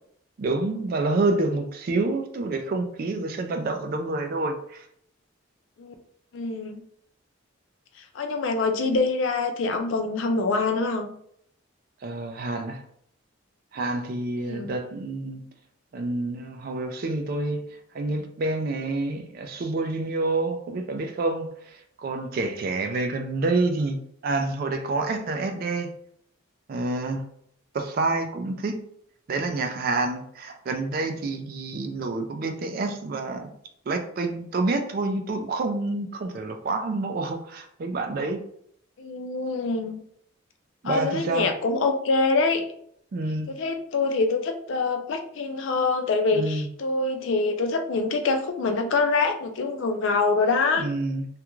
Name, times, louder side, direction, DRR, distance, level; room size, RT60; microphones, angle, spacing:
voice 1, 0.4-4.9 12.0-12.8 13.7-15.4 15.9-17.7 17.9-25.9 26.7-27.3 27.7-28.8 29.3-33.5 33.9-38.4 40.8-41.5 43.1-43.5 46.3-46.7 50.8-51.3, right 2 dB, 45° right, 0.3 m, -28 dB
voice 2, 6.3-6.8 8.0-11.1 14.4-14.7 39.0-40.0 40.8-42.7 43.5-50.9, left 3 dB, 65° left, 0.3 m, -25 dB
2.4 x 2.2 x 3.0 m
head